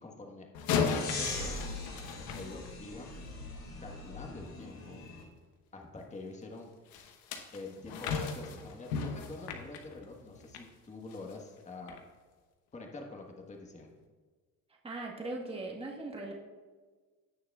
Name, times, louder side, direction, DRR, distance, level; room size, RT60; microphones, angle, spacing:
voice 1, 0.0-1.6 2.4-3.1 3.8-5.1 5.7-6.7 7.5-12.0 12.7-13.9, left 3 dB, 20° left, 1 dB, 1.3 m, -46 dB
sound 1, 0.5-3.1 6.9-10.7 11.1-11.3 11.9-12.0, left 5 dB, 90° left, 1.1 m, -36 dB
sound 2, 0.8-5.2, left 3 dB, 55° left, 2.8 m, -41 dB
voice 2, 14.8-16.3, right 2 dB, 15° right, -1 dB, 1.4 m, -39 dB
16.5 x 6.4 x 2.4 m, 1.4 s
cardioid pair, 105°, 34 cm